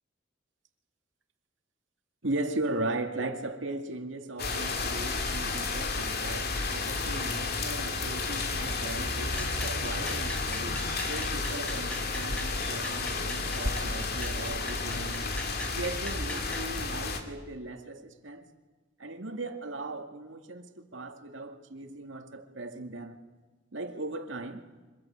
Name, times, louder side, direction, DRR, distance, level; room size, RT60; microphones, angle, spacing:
voice 1, 2.2-15.3 15.7-18.5 19.0-23.2 23.7-24.6, right 2 dB, 80° right, 5 dB, 2.2 m, -38 dB
sound 1, 4.4-17.2, left 3 dB, 55° left, 2.5 m, -32 dB
sound 2, 9.4-16.8, equal, 5° left, 1.8 m, -42 dB
25.0 x 20.5 x 8.8 m, 1.3 s
head